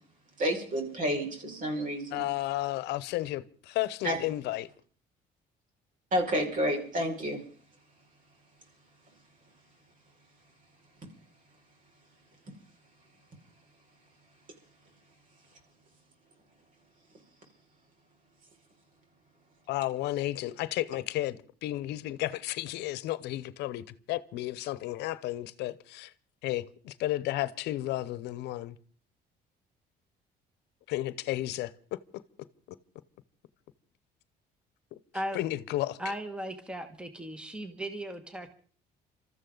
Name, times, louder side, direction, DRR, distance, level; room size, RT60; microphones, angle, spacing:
voice 1, 0.4-2.2 4.0-4.2 6.1-7.4, equal, 50° right, 5.4 m, -30 dB
voice 2, 2.1-4.7 19.7-21.4 21.6-26.1 26.4-28.7 30.9-32.0 35.3-36.0, left 15 dB, 85° left, 0.8 m, -33 dB
voice 3, 36.0-38.5, equal, 5° right, 1.6 m, -37 dB
26.5 x 14.0 x 3.9 m
cardioid pair, 110°, 17 cm